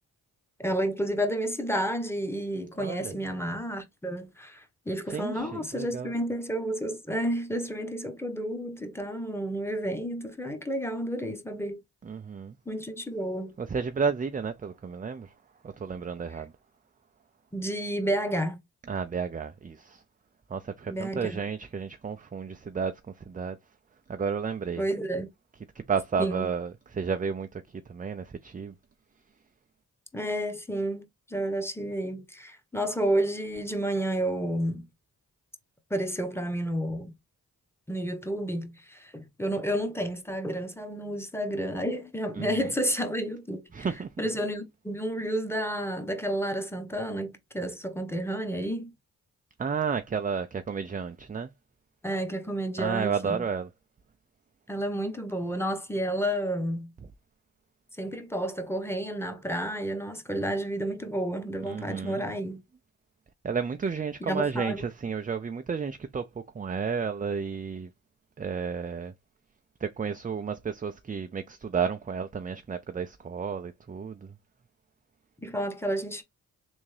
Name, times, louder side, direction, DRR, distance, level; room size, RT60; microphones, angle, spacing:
voice 1, 0.6-11.8 12.7-13.5 17.5-18.6 20.9-21.4 24.8-25.3 26.2-26.5 30.1-34.9 35.9-37.1 37.9-43.9 44.2-48.9 52.0-53.5 54.7-56.9 58.0-62.6 64.2-64.8 75.4-76.2, right 1 dB, 5° left, 1.1 m, -31 dB
voice 2, 2.8-3.1 5.1-6.1 12.0-12.5 13.6-15.3 15.6-16.5 18.9-20.0 20.5-22.9 23.3-23.6 24.1-24.8 25.8-27.6 27.9-28.7 42.3-42.7 43.7-44.3 49.6-51.5 52.8-53.7 61.6-62.2 63.4-66.3 66.5-67.9 68.4-69.1 69.8-74.3, right 6 dB, 20° right, 0.4 m, -32 dB
3.5 x 2.6 x 3.2 m
supercardioid pair, 45°, 39 cm